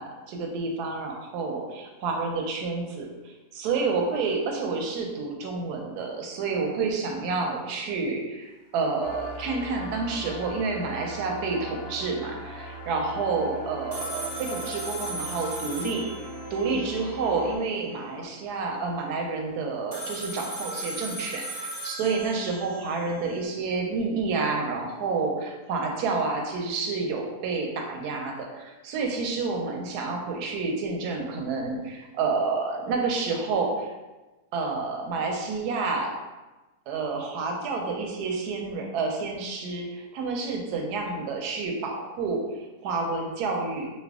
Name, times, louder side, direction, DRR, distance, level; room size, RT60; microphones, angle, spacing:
voice 1, 0.0-16.1 16.5-33.9 34.5-36.1 36.9-43.9, right 4 dB, 85° right, 1 dB, 1.1 m, -29 dB
sound 1, 9.0-17.6, equal, 85° left, 1.3 m, -39 dB
sound 2, 13.9-17.3 19.9-23.3, right 2 dB, 40° right, 0.6 m, -37 dB
3.2 x 2.2 x 3.5 m, 1.1 s
omnidirectional pair, 1.7 m